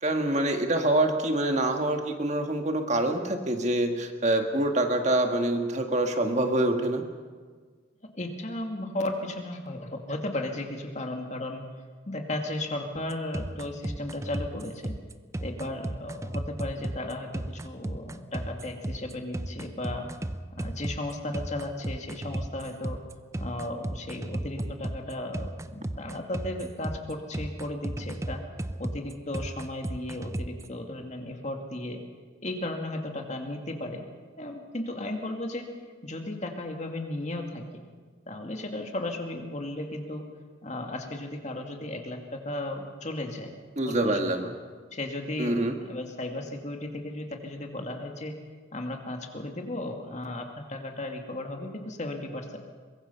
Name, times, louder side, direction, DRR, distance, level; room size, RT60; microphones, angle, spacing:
voice 1, 0.0-7.0 43.8-44.5 45.4-45.7, right 1 dB, 35° right, 5 dB, 1.6 m, -25 dB
voice 2, 8.1-11.6 12.1-14.9 15.4-20.1 20.6-23.0 23.4-28.4 28.8-32.0 32.4-34.0 34.4-35.7 36.0-37.6 38.3-40.2 40.6-43.5 43.8-44.5 44.9-48.3 48.7-52.6, left 1 dB, 35° left, 3 dB, 2.2 m, -35 dB
sound 1, 13.0-30.7, right 1 dB, 15° right, 0.6 m, -35 dB
23.5 x 21.5 x 5.6 m, 1.5 s
head